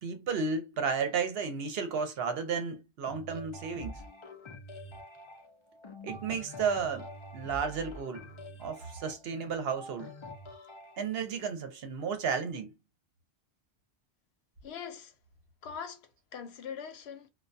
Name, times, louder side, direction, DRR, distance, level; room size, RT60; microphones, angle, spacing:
voice 1, 0.0-4.0 6.0-7.1 7.3-10.1 11.0-12.7, right 5 dB, 70° right, 0.9 m, -33 dB
sound 1, 3.1-11.0, left 1 dB, 40° left, 0.4 m, -46 dB
voice 2, 14.6-15.1 15.6-17.3, left 7 dB, 80° left, 0.9 m, -42 dB
2.2 x 2.2 x 2.5 m
omnidirectional pair, 1.1 m